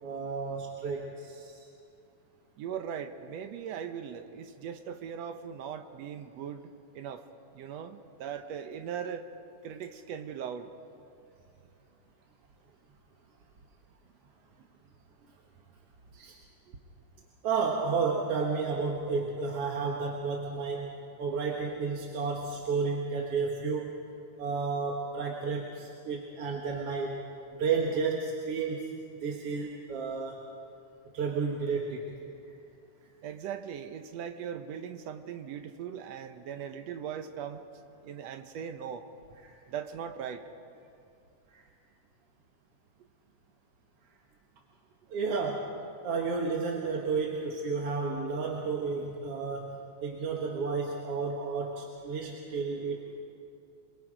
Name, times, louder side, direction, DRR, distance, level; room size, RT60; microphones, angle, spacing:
voice 1, 0.0-1.6 16.1-16.4 17.4-20.9 21.2-23.9 24.4-27.2 27.5-28.9 29.2-30.4 31.1-32.1 39.4-39.6 41.5-41.6 45.1-45.7 46.0-53.2, right 4 dB, 55° right, 0 dB, 2.1 m, -32 dB
voice 2, 2.6-7.2 7.5-9.3 9.6-10.7 16.7-16.8 33.2-37.6 38.0-39.1 39.7-40.4, right 8 dB, 70° right, 8 dB, 1.7 m, -39 dB
28.5 x 22.5 x 5.0 m, 2.5 s
omnidirectional pair, 3.8 m